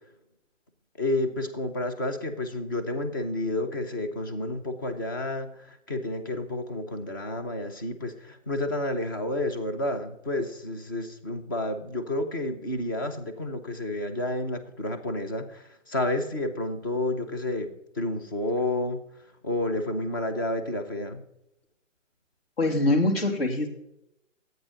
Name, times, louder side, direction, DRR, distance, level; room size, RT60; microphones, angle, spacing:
voice 1, 1.0-17.7 18.0-19.0 19.4-21.2, left 1 dB, 15° left, 7 dB, 0.7 m, -30 dB
voice 2, 22.6-23.7, left 2 dB, 50° left, 4 dB, 2.9 m, -23 dB
13.0 x 9.0 x 5.0 m, 0.83 s
hypercardioid pair, 165°, 38 cm